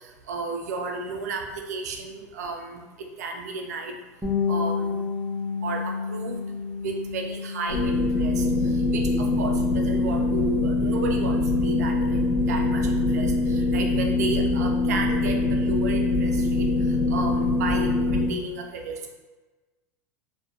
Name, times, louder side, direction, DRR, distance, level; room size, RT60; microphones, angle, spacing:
voice 1, 0.3-2.8 3.2-4.0 4.5-5.0 5.6-6.4 6.8-8.5 8.9-16.7 17.1-19.1, right 3 dB, 85° right, 3 dB, 0.4 m, -33 dB
Bass guitar, 4.2-8.9 9.2-10.5, left 5 dB, 15° right, 0.6 m, -31 dB
sound 1, 7.7-18.3, left 2 dB, 90° left, 0.7 m, -23 dB
2.6 x 2.2 x 2.5 m, 1.2 s
supercardioid pair, 115°, 9 cm